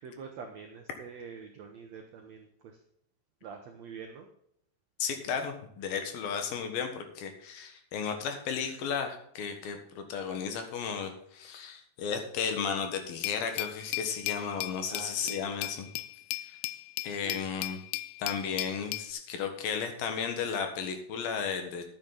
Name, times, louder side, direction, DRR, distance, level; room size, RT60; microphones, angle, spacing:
voice 1, 0.0-2.8 3.4-4.3 14.9-15.5 17.2-17.4, right 6 dB, 85° right, 4 dB, 1.5 m, -45 dB
voice 2, 5.0-15.9 17.0-17.8 18.2-21.8, left 6 dB, 70° left, 6 dB, 3.1 m, -34 dB
Glass, 13.2-19.1, left 17 dB, 85° left, 2.6 m, -37 dB
12.0 x 8.8 x 4.0 m, 0.70 s
omnidirectional pair, 4.7 m